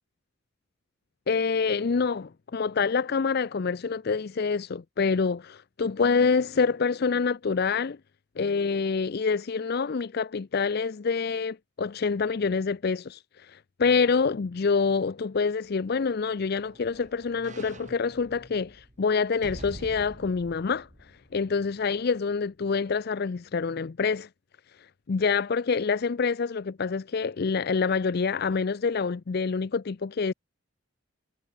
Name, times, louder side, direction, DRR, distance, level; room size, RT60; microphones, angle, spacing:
voice 1, 1.3-8.0 8.4-20.9 21.3-24.3 25.1-30.3, left 5 dB, 50° left, 0.5 m, -26 dB
sound 1, 15.7-22.0 22.5-22.6, right 1 dB, 35° right, 3.0 m, -47 dB
head